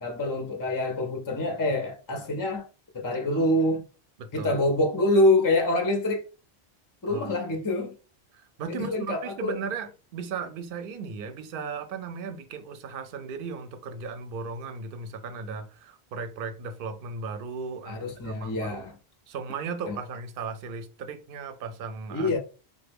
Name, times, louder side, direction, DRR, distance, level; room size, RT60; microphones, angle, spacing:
voice 1, 0.0-2.7 2.9-3.8 4.3-6.2 7.0-7.9 8.7-9.6 17.9-18.9 19.9-20.0 22.1-22.4, left 1 dB, 35° left, 0.3 m, -26 dB
voice 2, 4.2-4.5 7.1-7.2 8.3-18.8 19.3-22.3, right 5 dB, 65° right, 0.7 m, -36 dB
3.3 x 2.1 x 3.4 m
omnidirectional pair, 1.1 m